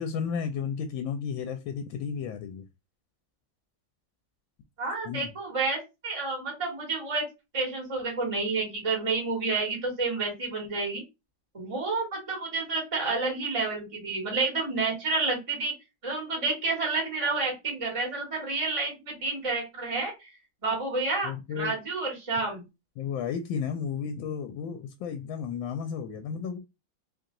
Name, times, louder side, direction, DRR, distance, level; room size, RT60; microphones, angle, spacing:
voice 1, 0.0-2.6 5.0-5.3 21.2-21.7 23.0-26.6, left 7 dB, 80° left, 1.3 m, -33 dB
voice 2, 4.8-7.3 7.5-11.0 11.5-15.7 16.0-20.3 20.6-22.6, right 3 dB, 20° right, 1.4 m, -30 dB
3.3 x 2.7 x 3.7 m
omnidirectional pair, 2.1 m